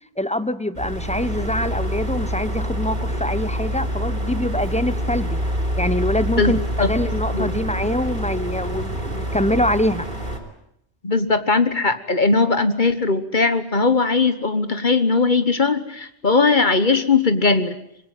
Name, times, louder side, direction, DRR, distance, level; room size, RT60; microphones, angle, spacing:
voice 1, 0.2-5.4 5.8-10.1, left 1 dB, 5° left, 14 dB, 0.9 m, -24 dB
sound 1, 0.7-10.4, equal, 45° right, 4.2 m, -26 dB
voice 2, 6.4-6.9 7.3-7.6 11.0-17.8, left 4 dB, 45° left, 11 dB, 1.5 m, -19 dB
25.5 x 21.5 x 9.1 m, 0.76 s
omnidirectional pair, 1.2 m